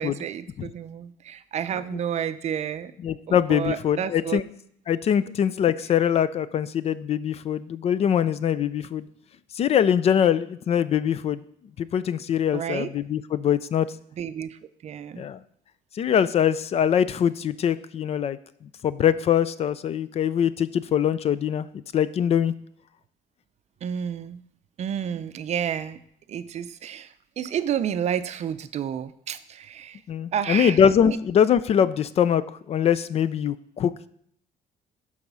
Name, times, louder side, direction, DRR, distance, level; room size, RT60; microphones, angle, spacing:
voice 1, 0.0-2.9 3.3-4.4 5.3-5.4 12.5-12.9 14.1-15.3 23.8-24.4 24.8-26.0 26.3-30.0 30.3-31.2, right 9 dB, 45° right, 13 dB, 0.5 m, -30 dB
voice 2, 3.0-4.4 4.9-9.1 9.5-11.4 11.8-13.9 15.2-15.4 15.9-18.4 18.8-22.5 30.1-34.1, left 9 dB, 40° left, 16 dB, 0.4 m, -23 dB
13.0 x 4.9 x 5.5 m, 0.66 s
cardioid pair, 150°, 16 cm